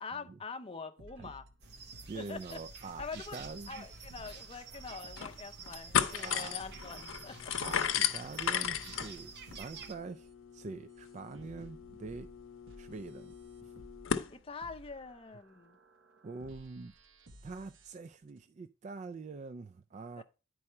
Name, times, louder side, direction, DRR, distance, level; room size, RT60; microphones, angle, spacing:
voice 1, 0.0-1.5 2.1-2.6 3.0-3.4 3.7-7.5 14.3-15.8 20.2-20.3, left 4 dB, 30° left, 0.6 m, -44 dB
sound 1, 1.0-7.1 7.4-10.3 10.9-18.4, right 1 dB, 75° right, 0.9 m, -57 dB
sound 2, 1.6-10.0, right 5 dB, 60° right, 1.0 m, -49 dB
voice 2, 2.1-3.9 6.2-6.6 7.6-12.3 12.8-13.3 13.6-13.7 16.2-16.9 17.4-20.2, right 4 dB, 35° right, 0.3 m, -45 dB
sound 3, 3.9-4.0 4.3-4.4 4.9-5.4 5.7-14.3, left 8 dB, 80° left, 0.7 m, -36 dB
9.8 x 4.8 x 4.2 m
head